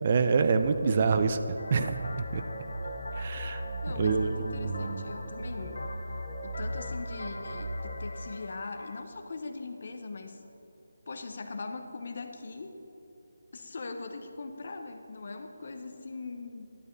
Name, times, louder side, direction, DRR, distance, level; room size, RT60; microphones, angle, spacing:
voice 1, 0.0-2.4 3.1-3.6 4.0-5.1, right 5 dB, 35° right, 9 dB, 0.4 m, -27 dB
sound 1, 0.6-8.0, right 1 dB, 20° right, 1.5 m, -38 dB
sound 2, 1.6-9.0, left 2 dB, 85° left, 0.5 m, -44 dB
voice 2, 3.8-5.8 6.4-10.4 11.1-12.8 13.5-16.7, left 3 dB, 50° left, 6 dB, 0.7 m, -40 dB
11.0 x 8.0 x 3.2 m, 2.9 s
figure-of-eight pair, 170°, 0 cm